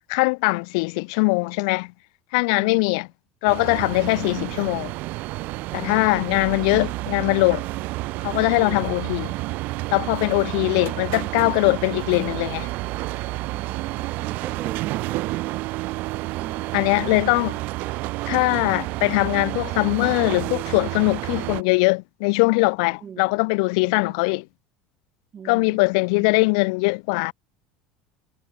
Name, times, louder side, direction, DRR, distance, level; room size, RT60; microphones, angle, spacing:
voice 1, 0.0-1.9 2.3-3.1 3.4-4.9 5.7-7.6 8.2-9.3 9.9-12.7 16.7-17.5 18.3-24.4 25.5-27.3, left 31 dB, 70° left, 1.3 m, -21 dB
voice 2, 2.5-2.8 3.9-4.3 5.7-6.6 7.7-8.1 8.5-8.8 10.4-10.7 13.4-15.6 16.3-16.9 23.0-23.3 23.9-24.2 25.3-26.3, right 7 dB, 35° right, 7.9 m, -43 dB
sound 1, 3.4-21.6, right 20 dB, 60° right, 0.9 m, -30 dB
hypercardioid pair, 75°, 3 cm